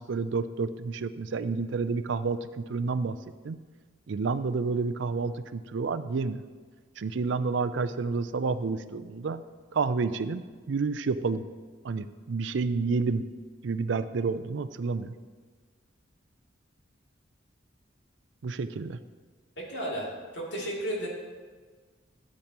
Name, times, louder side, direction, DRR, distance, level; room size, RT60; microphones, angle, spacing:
voice 1, 0.0-3.2 3.4-3.6 4.1-6.4 7.0-9.4 9.7-10.4 10.7-11.4 11.8-13.2 13.6-15.1 18.4-19.0, right 4 dB, 70° right, 13 dB, 0.4 m, -29 dB
voice 2, 19.6-21.1, right 1 dB, 65° left, -4 dB, 2.7 m, -33 dB
13.5 x 8.8 x 3.0 m, 1.5 s
head